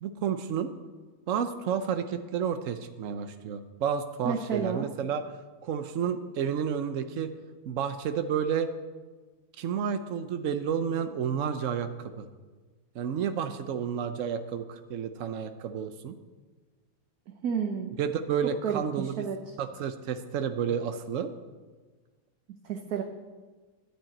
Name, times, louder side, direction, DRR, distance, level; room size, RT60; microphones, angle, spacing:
voice 1, 0.0-0.7 1.3-5.2 5.6-7.3 7.7-8.7 9.6-11.9 12.2-12.3 12.9-16.2 18.0-19.2 19.6-21.3, right 7 dB, 75° right, 9 dB, 0.7 m, -30 dB
voice 2, 4.2-4.9 17.3-17.9 18.4-19.5 22.5-23.0, right 7 dB, 55° right, 4 dB, 1.2 m, -32 dB
12.0 x 10.0 x 8.8 m, 1.4 s
omnidirectional pair, 2.2 m